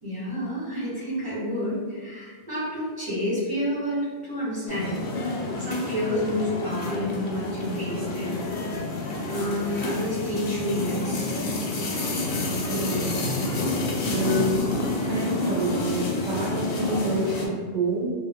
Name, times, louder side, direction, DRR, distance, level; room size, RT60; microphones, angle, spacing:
voice 1, 0.0-5.0 5.6-8.4 9.2-11.3 14.0-14.3, equal, 30° right, -10 dB, 1.0 m, -29 dB
sound 1, 4.7-17.5, left 2 dB, 60° left, 0.6 m, -29 dB
voice 2, 12.7-13.3 14.0-14.7 15.0-18.1, right 1 dB, 80° right, -4 dB, 0.9 m, -28 dB
2.3 x 2.1 x 3.5 m, 1.6 s
omnidirectional pair, 1.2 m